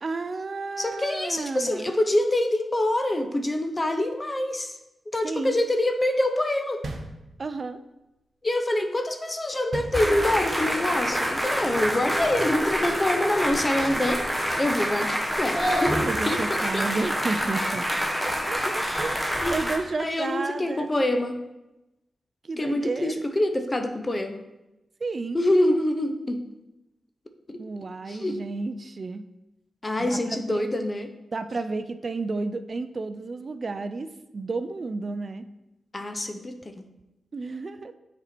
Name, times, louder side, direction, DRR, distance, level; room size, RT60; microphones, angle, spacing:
voice 1, 0.0-1.9 5.2-5.6 7.4-7.8 16.0-17.8 18.2-20.9 22.4-23.2 25.0-25.4 27.6-29.2 30.0-30.6 31.3-35.4 37.3-37.9, right 3 dB, 50° right, 10 dB, 0.4 m, -32 dB
voice 2, 0.8-4.7 5.1-6.9 8.4-14.2 14.6-16.0 16.3-16.9 18.8-19.1 19.4-19.6 20.0-21.4 22.6-24.4 25.3-26.5 27.5-27.6 28.1-28.4 29.8-31.1 35.9-36.9, left 1 dB, 30° left, 6 dB, 0.7 m, -26 dB
sound 1, 6.8-7.7 9.7-10.6, right 2 dB, 70° right, 0.8 m, -37 dB
sound 2, 9.9-19.8, equal, 5° left, 1.1 m, -27 dB
6.9 x 4.2 x 4.3 m, 0.96 s
cardioid pair, 60°, 0 cm